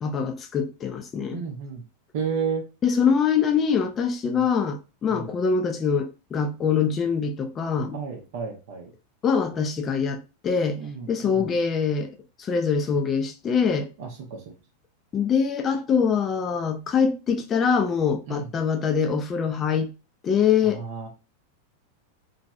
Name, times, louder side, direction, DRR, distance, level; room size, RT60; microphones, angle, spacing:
voice 1, 0.0-1.4 2.8-8.0 9.2-10.8 11.1-12.1 12.4-13.9 15.1-19.9 20.2-20.8, left 6 dB, 25° left, 0.4 m, -24 dB
voice 2, 1.3-1.8 2.1-2.6 4.3-4.4 5.1-5.3 7.9-8.9 10.7-11.5 14.0-14.4 18.3-18.5 20.6-21.1, right 6 dB, 50° right, 0.6 m, -32 dB
3.0 x 2.6 x 2.2 m
figure-of-eight pair, 90°, 0 cm